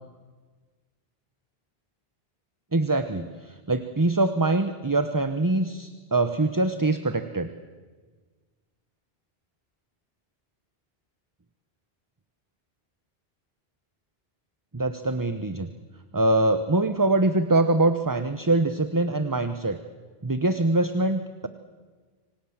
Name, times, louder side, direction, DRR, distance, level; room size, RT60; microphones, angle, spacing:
voice 1, 2.7-7.5 14.7-15.7 16.1-19.8 20.2-21.5, right 2 dB, 20° right, 10 dB, 1.0 m, -24 dB
27.0 x 25.5 x 7.3 m, 1.4 s
omnidirectional pair, 1.0 m